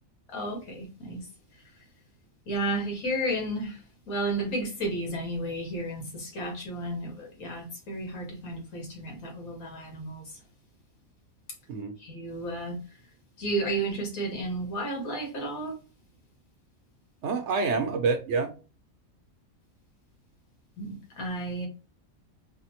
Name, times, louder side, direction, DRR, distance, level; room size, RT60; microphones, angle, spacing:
voice 1, 0.3-1.2 2.5-3.8 4.1-10.2 12.0-12.8 13.4-15.7 20.8-21.7, right 1 dB, 80° left, 1.5 m, -32 dB
voice 2, 17.2-18.5, right 4 dB, 65° right, 0.8 m, -27 dB
3.5 x 2.0 x 2.8 m
omnidirectional pair, 1.5 m